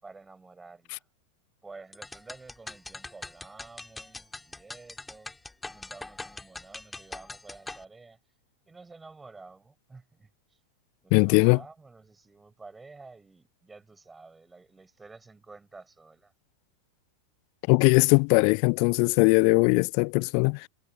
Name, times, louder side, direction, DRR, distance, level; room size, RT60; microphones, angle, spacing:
voice 1, 0.0-1.0 1.6-5.3 5.6-8.2 8.7-10.6 11.0-16.3, right 3 dB, 10° right, 6.5 m, -50 dB
sound 1, 1.9-7.8, left 2 dB, 10° left, 3.9 m, -42 dB
voice 2, 11.1-11.6 17.7-20.7, left 40 dB or more, 45° left, 0.3 m, -20 dB
figure-of-eight pair, 90°, 0 cm